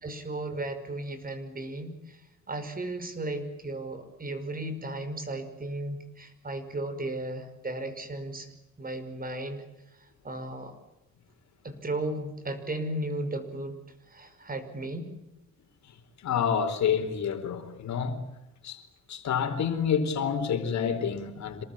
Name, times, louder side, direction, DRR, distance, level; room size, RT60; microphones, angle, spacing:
voice 1, 0.0-2.0 2.5-8.5 8.8-9.6 10.2-10.8 11.6-13.8 14.1-15.1, right 1 dB, 30° right, 5.5 m, -35 dB
voice 2, 16.2-18.2 18.6-18.8 19.1-21.6, left 7 dB, 65° left, 4.2 m, -28 dB
27.0 x 19.5 x 8.8 m
cardioid pair, 90°, 30 cm